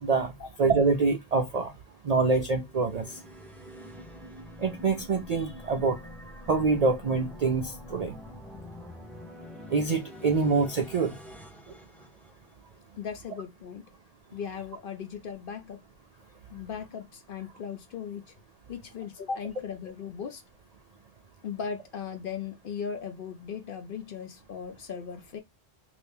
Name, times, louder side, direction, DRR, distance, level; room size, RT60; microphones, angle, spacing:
voice 1, 0.0-0.3 0.6-1.7 2.0-3.1 4.6-6.0 6.5-8.2 9.7-11.2, right 4 dB, 55° right, 0.4 m, -25 dB
sound 1, 2.5-12.8, left 1 dB, ahead, 0.8 m, -46 dB
voice 2, 13.0-13.8 14.3-15.8 16.5-18.2 18.7-20.4 21.4-25.4, left 6 dB, 55° left, 0.7 m, -37 dB
2.7 x 2.6 x 3.4 m
omnidirectional pair, 1.2 m